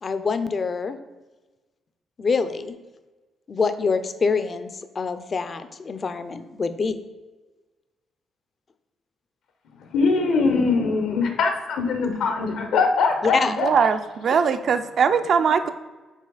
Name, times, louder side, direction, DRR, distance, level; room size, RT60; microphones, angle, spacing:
voice 1, 0.0-1.0 2.2-2.8 3.5-7.0 13.2-13.6, left 4 dB, 35° left, 11 dB, 0.4 m, -25 dB
voice 2, 9.9-13.7, left 4 dB, 75° left, 5 dB, 0.9 m, -22 dB
voice 3, 13.5-15.7, right 6 dB, 55° right, 9 dB, 0.4 m, -21 dB
6.3 x 4.1 x 3.9 m, 1.2 s
cardioid pair, 110°, 0 cm